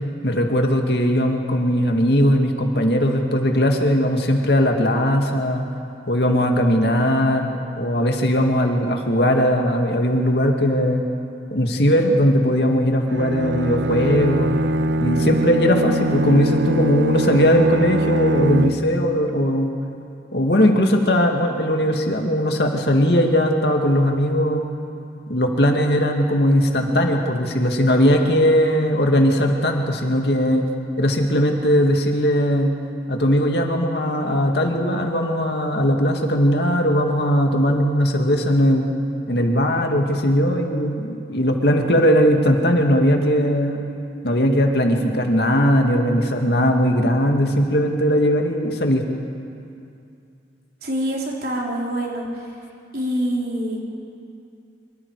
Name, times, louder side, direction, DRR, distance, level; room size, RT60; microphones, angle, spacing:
voice 1, 0.2-5.7 6.1-11.0 11.5-14.6 15.0-19.7 20.3-24.7 25.3-30.7 31.0-32.7 33.1-38.9 39.3-43.8 44.2-49.0, equal, 65° left, 2 dB, 2.2 m, -19 dB
Bowed string instrument, 13.1-19.1, right 1 dB, 90° right, 0.7 m, -22 dB
voice 2, 50.8-52.5 52.9-53.8, equal, 60° right, -2 dB, 3.7 m, -25 dB
25.5 x 23.5 x 4.9 m, 2.5 s
head